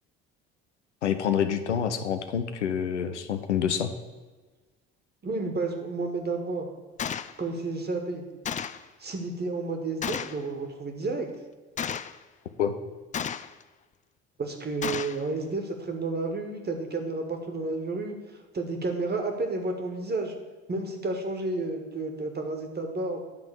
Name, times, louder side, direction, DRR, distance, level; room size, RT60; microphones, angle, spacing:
voice 1, 1.0-3.9 12.6-12.7, left 8 dB, 90° left, 9 dB, 0.6 m, -27 dB
voice 2, 5.2-6.7 7.4-8.2 9.0-11.3 14.4-18.2 18.5-20.3 20.7-23.2, right 3 dB, 30° right, 4 dB, 1.7 m, -31 dB
Gunshot gunfire, 7.0-7.3 8.5-8.9 10.0-10.4 11.8-12.2 13.1-13.6 14.8-15.2, left 8 dB, 25° left, 0.4 m, -32 dB
10.5 x 3.8 x 6.9 m, 1.3 s
hypercardioid pair, 55°, 34 cm